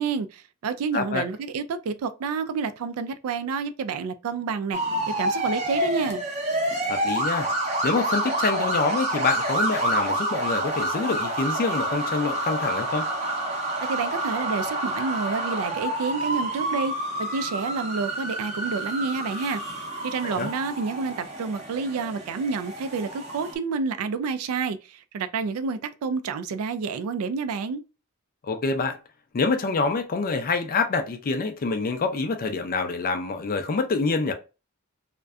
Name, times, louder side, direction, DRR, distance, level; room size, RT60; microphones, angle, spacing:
voice 1, 0.0-4.8 5.2-6.2 13.8-16.9 17.2-19.6 20.0-27.8, right 5 dB, 70° right, 0.3 m, -29 dB
voice 2, 0.9-1.2 6.9-7.5 7.8-13.1 20.2-20.5 28.5-29.0 29.3-34.3, left 4 dB, 40° left, 0.4 m, -26 dB
sound 1, 4.7-23.5, right 1 dB, 30° right, 0.6 m, -28 dB
2.5 x 2.1 x 2.3 m
head